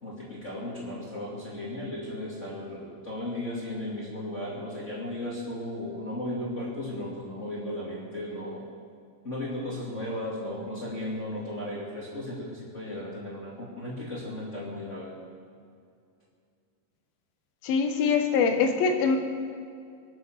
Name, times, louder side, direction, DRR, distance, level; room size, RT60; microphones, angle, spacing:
voice 1, 0.0-8.6 9.2-15.1, left 1 dB, 25° left, -5 dB, 2.3 m, -35 dB
voice 2, 17.6-19.2, left 5 dB, 85° left, 6 dB, 3.1 m, -23 dB
24.0 x 8.2 x 6.6 m, 2.3 s
omnidirectional pair, 4.1 m